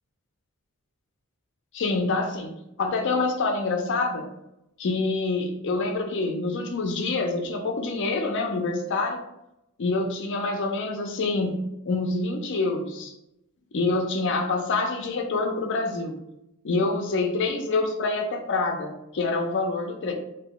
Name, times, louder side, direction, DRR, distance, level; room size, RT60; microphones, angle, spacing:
voice 1, 1.7-4.3 4.8-9.2 9.8-13.1 13.7-16.1 16.6-20.1, left 3 dB, 55° left, 3 dB, 0.5 m, -26 dB
2.7 x 2.2 x 3.6 m, 0.85 s
head